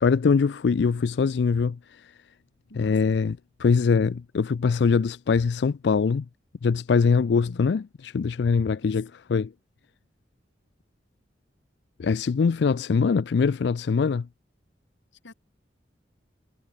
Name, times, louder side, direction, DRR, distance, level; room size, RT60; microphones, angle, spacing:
voice 1, 0.0-2.1 2.7-6.3 6.6-9.5 12.0-14.3, left 5 dB, 65° left, 0.4 m, -23 dB
voice 2, 2.7-3.2 7.2-7.6 8.8-9.0 15.2-15.3, left 2 dB, 90° left, 2.3 m, -47 dB
head